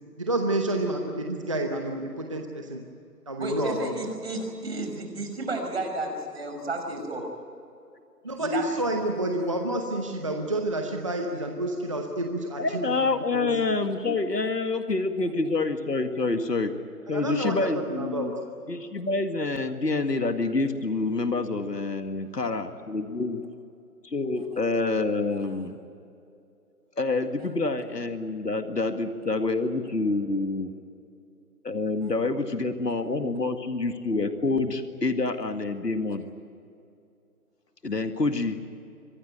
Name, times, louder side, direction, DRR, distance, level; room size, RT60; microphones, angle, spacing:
voice 1, 0.2-2.8 3.3-4.0 8.2-12.6 13.3-13.5 17.1-18.3, right 1 dB, 20° right, 3 dB, 0.9 m, -29 dB
voice 2, 3.4-7.3 8.4-8.6, right 2 dB, 40° right, 4 dB, 5.8 m, -32 dB
voice 3, 12.6-16.7 17.1-18.3 18.7-23.4 24.0-25.8 27.0-30.7 31.6-36.2 37.8-38.6, left 3 dB, 90° left, 7 dB, 2.2 m, -27 dB
25.0 x 19.0 x 9.2 m, 2.6 s
figure-of-eight pair, 165°, 47 cm